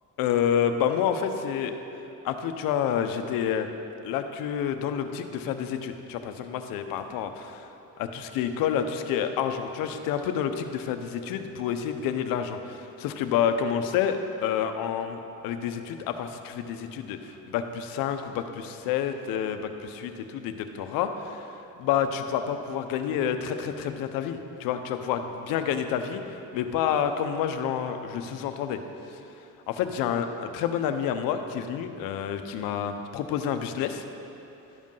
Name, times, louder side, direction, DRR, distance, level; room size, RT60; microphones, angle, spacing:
voice 1, 0.2-1.7 2.2-3.7 4.0-7.6 8.0-14.2 14.4-21.5 21.8-26.2 26.5-28.8 29.7-34.0, left 8 dB, 80° left, 8 dB, 0.7 m, -29 dB
11.5 x 5.2 x 5.5 m, 2.9 s
cardioid pair, 125°, 33 cm